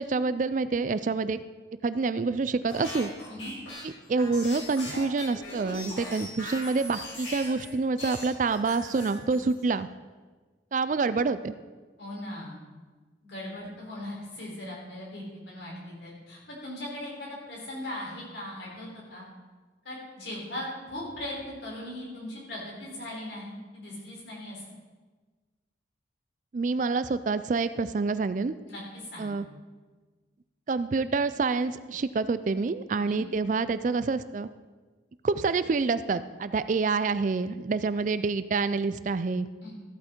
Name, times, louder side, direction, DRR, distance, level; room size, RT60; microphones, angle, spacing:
voice 1, 0.0-1.4 1.8-3.1 3.8-9.9 10.7-11.5 26.5-28.5 29.2-29.4 30.7-34.5 35.2-39.5, right 4 dB, 40° right, 13 dB, 0.3 m, -27 dB
sound 1, 2.7-7.7 8.0-9.6, left 1 dB, 85° left, 4.4 m, -40 dB
voice 2, 12.0-12.6 13.2-19.2 19.8-24.8 28.7-29.4 33.0-33.2 39.6-39.7, left 1 dB, 65° left, -4 dB, 4.0 m, -39 dB
14.0 x 8.6 x 4.5 m, 1.3 s
head